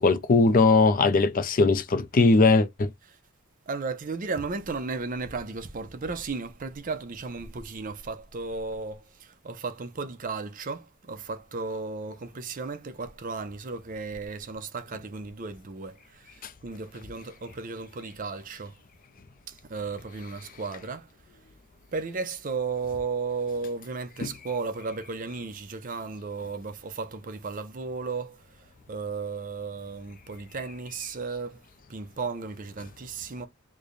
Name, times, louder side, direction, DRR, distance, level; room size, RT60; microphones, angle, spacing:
voice 1, 0.0-2.9 24.2-24.3, left 3 dB, 40° left, 0.5 m, -20 dB
voice 2, 3.7-18.7 19.5-21.1 21.9-31.6 31.9-33.5, right 4 dB, 40° right, 0.5 m, -34 dB
3.2 x 2.2 x 3.8 m
head